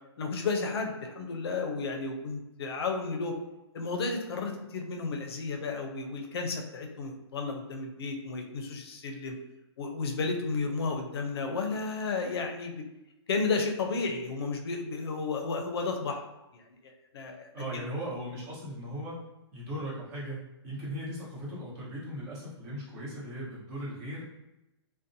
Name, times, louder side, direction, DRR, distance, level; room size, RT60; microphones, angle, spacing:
voice 1, 0.2-3.4 3.7-9.4 9.8-12.8 13.3-16.2 17.1-17.8, left 4 dB, 60° left, 3 dB, 0.5 m, -32 dB
voice 2, 17.5-19.2 19.5-24.2, equal, 40° right, -7 dB, 1.1 m, -38 dB
2.5 x 2.1 x 2.7 m, 0.94 s
hypercardioid pair, 165°, 15 cm